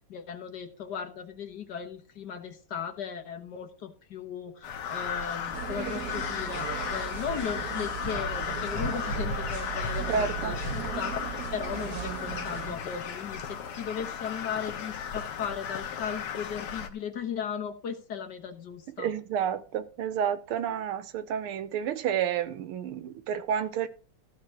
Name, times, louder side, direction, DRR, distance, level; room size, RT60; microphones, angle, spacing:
voice 1, 0.1-10.6 11.0-11.2 11.5-19.1, left 7 dB, 55° left, 1.7 m, -37 dB
Crow, 4.6-16.9, left 6 dB, 90° left, 2.1 m, -35 dB
sound 1, 5.5-12.8, right 10 dB, 60° right, 1.1 m, -37 dB
voice 2, 10.1-10.5 19.0-23.9, right 8 dB, 80° right, 1.8 m, -30 dB
14.5 x 4.8 x 6.2 m
omnidirectional pair, 2.4 m